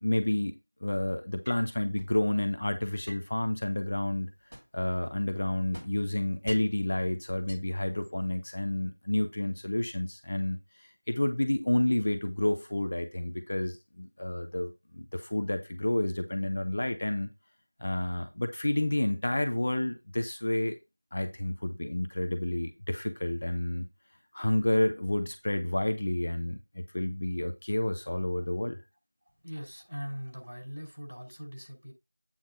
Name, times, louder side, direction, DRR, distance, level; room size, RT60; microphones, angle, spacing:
voice 1, 0.0-4.3 4.7-10.6 11.1-17.3 17.8-20.8 21.1-23.9 24.3-28.8, left 1 dB, 20° left, 0.5 m, -30 dB
sound 1, 1.4-2.2 3.0-4.9 5.2-6.9 7.3-8.4, equal, 40° right, 3.0 m, -47 dB
voice 2, 29.4-31.9, equal, 75° right, 5.9 m, -41 dB
8.7 x 3.5 x 5.6 m
figure-of-eight pair, 180°, 0 cm